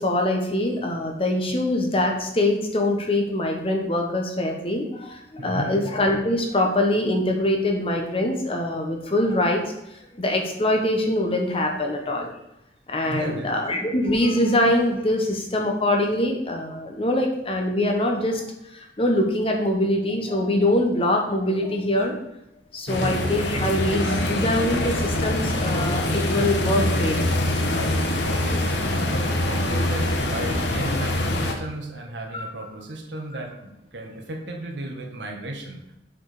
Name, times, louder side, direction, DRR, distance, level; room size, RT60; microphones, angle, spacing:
voice 1, 0.0-9.7 10.1-12.3 12.9-18.4 18.7-22.2 22.7-27.2 32.3-32.5, left 1 dB, 30° left, 2 dB, 1.2 m, -23 dB
voice 2, 5.4-5.8 13.1-13.5 22.9-23.2 28.4-35.8, right 1 dB, 90° right, 1 dB, 1.5 m, -34 dB
sound 1, 22.9-31.5, left 1 dB, 80° left, 1.2 m, -24 dB
7.4 x 4.8 x 5.0 m, 0.85 s
head